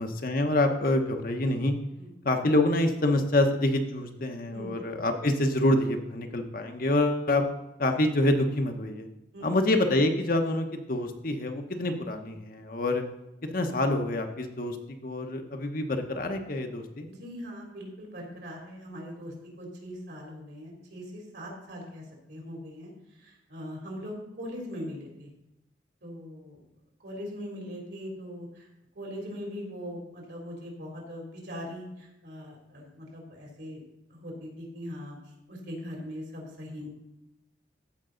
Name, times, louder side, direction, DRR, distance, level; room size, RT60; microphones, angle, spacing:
voice 1, 0.0-1.7 2.2-7.4 7.8-9.1 9.4-13.0 13.5-17.1, left 1 dB, 50° left, 5 dB, 0.9 m, -26 dB
voice 2, 17.1-25.3 26.0-26.6 27.0-28.7 28.9-33.8 34.1-35.2 35.5-36.9, equal, 70° right, -1 dB, 3.2 m, -41 dB
14.5 x 5.3 x 3.9 m, 0.94 s
head